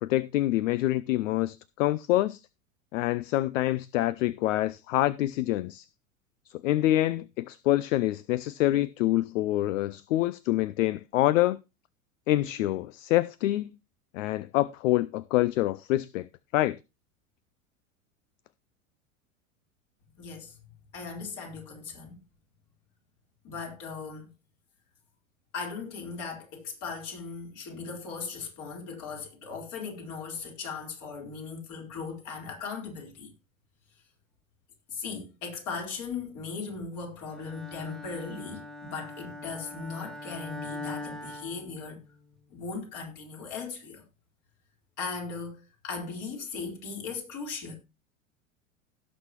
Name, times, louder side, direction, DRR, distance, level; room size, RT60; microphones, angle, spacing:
voice 1, 0.0-2.4 2.9-5.9 6.6-11.6 12.3-13.7 14.1-16.3 16.5-16.8, left 15 dB, 65° left, 0.5 m, -26 dB
voice 2, 20.2-20.6 20.9-22.2 23.4-24.3 25.5-33.3 34.9-42.0 42.5-44.0 45.0-47.7, left 5 dB, 45° left, 4.2 m, -38 dB
Bowed string instrument, 37.3-42.3, left 2 dB, ahead, 1.2 m, -42 dB
17.5 x 6.3 x 3.0 m
hypercardioid pair, 90°, 41 cm